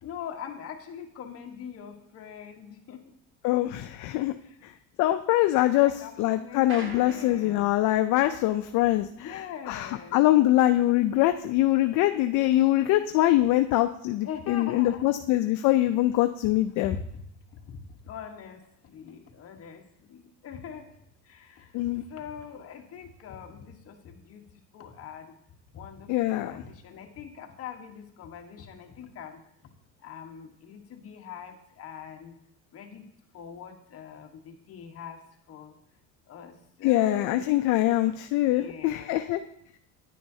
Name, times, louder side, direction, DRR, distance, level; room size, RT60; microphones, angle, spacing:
voice 1, 0.0-3.0 4.4-4.6 5.7-7.8 9.2-10.2 14.2-15.2 16.8-17.0 17.7-19.8 20.1-20.9 21.3-24.4 24.7-25.3 25.7-29.4 30.0-32.3 32.7-33.0 33.3-35.2 35.5-35.7 36.3-37.6 38.4-39.4, left 7 dB, 40° left, 3 dB, 1.3 m, -42 dB
voice 2, 3.4-4.3 4.6-4.7 5.0-5.9 6.2-9.4 9.7-17.0 21.7-22.0 26.1-26.5 36.8-39.4, left 15 dB, 55° left, 9 dB, 0.4 m, -23 dB
sound 1, 6.7-12.1 12.4-13.7, right 3 dB, 35° right, 1.3 m, -48 dB
9.9 x 9.4 x 2.7 m, 0.76 s
cardioid pair, 135°, 37 cm